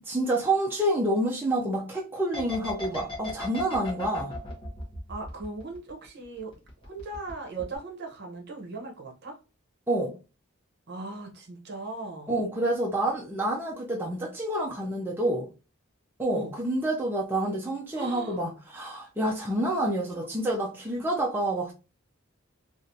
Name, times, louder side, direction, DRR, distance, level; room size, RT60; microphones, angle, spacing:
voice 1, 0.1-4.3 9.9-10.1 12.3-15.5 16.2-21.7, right 1 dB, 10° right, 0.5 m, -28 dB
sound 1, 2.3-6.1 6.4-7.3 7.6-7.8, left 3 dB, 25° left, 1.1 m, -36 dB
voice 2, 5.1-6.5 6.8-9.4 10.9-12.3 16.3-16.5 18.0-18.4 20.1-20.3, right 3 dB, 50° right, 0.8 m, -38 dB
3.2 x 2.5 x 2.7 m
head